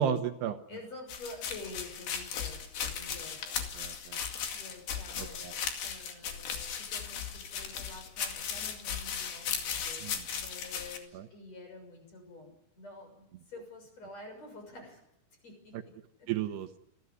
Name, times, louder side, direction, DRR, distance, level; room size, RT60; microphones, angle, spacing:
voice 1, 0.0-0.6 3.8-4.2 5.2-5.5 10.0-10.1 11.1-11.3 16.3-16.8, right 8 dB, 75° right, 8 dB, 3.0 m, -33 dB
voice 2, 0.7-3.7 4.5-15.0 15.4-16.3, left 2 dB, 35° left, 4 dB, 7.5 m, -49 dB
sound 1, 1.1-11.0, left 7 dB, 65° left, 4.1 m, -37 dB
27.5 x 15.5 x 9.6 m, 0.85 s
omnidirectional pair, 5.1 m